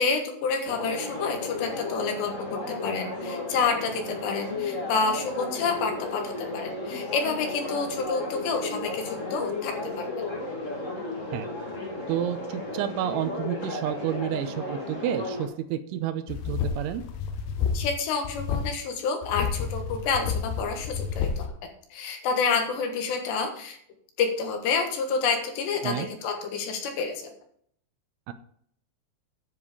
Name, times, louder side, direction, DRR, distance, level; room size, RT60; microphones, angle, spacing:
voice 1, 0.0-10.1 17.7-21.5 21.9-23.8 24.2-27.3, left 5 dB, 70° left, 4 dB, 3.4 m, -29 dB
sound 1, 0.6-15.5, left 2 dB, 50° left, 0.9 m, -34 dB
voice 2, 12.1-17.0 25.8-26.1 28.3-28.4, right 10 dB, 85° right, 11 dB, 3.1 m, -30 dB
sound 2, 16.3-18.0 18.2-18.7 19.2-21.5, left 6 dB, 90° left, 3.6 m, -30 dB
10.5 x 7.3 x 5.0 m, 0.64 s
omnidirectional pair, 5.5 m